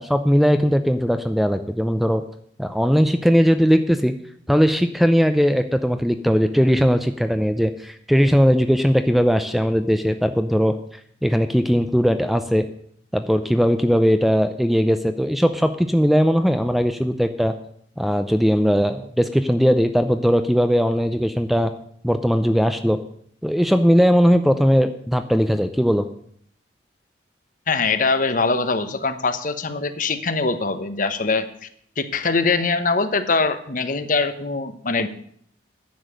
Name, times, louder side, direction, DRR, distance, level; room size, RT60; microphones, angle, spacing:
voice 1, 0.0-2.2 2.6-4.1 4.5-10.8 11.2-12.7 13.1-17.5 18.0-21.7 22.0-23.0 23.4-26.1, equal, ahead, 9 dB, 0.5 m, -19 dB
voice 2, 27.7-31.7 32.0-35.1, left 4 dB, 45° left, 10 dB, 1.0 m, -22 dB
10.5 x 7.0 x 9.0 m, 0.64 s
head